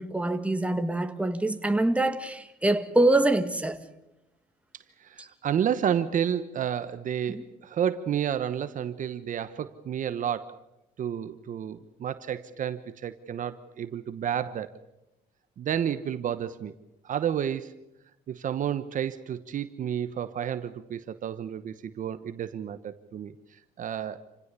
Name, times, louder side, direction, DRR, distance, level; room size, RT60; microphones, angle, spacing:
voice 1, 0.0-3.8 5.2-5.3 7.3-7.4, right 2 dB, 5° right, 1.9 m, -25 dB
voice 2, 5.0-10.6 11.0-14.7 15.6-16.7 17.0-17.7 18.3-23.3 23.8-24.2, right 9 dB, 50° right, 1.1 m, -31 dB
28.0 x 17.0 x 8.3 m
cardioid pair, 110°, 17 cm